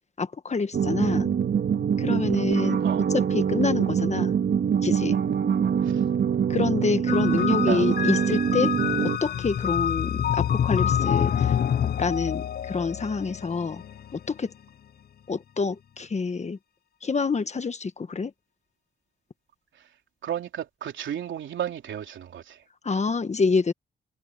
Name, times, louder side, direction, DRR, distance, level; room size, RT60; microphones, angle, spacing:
voice 1, 0.2-1.3 2.0-4.3 4.8-5.2 6.5-8.8 9.0-11.6 12.0-13.8 14.1-14.5 15.3-16.6 17.0-18.3 22.8-23.7, left 4 dB, 35° left, 1.4 m, -27 dB
sound 1, 0.7-9.2, right 7 dB, 65° right, 3.0 m, -24 dB
sound 2, 7.1-14.4, left 9 dB, 55° left, 0.6 m, -27 dB
voice 2, 7.4-7.8 20.2-22.6, right 10 dB, 80° right, 3.5 m, -33 dB
cardioid pair, 85°, 19 cm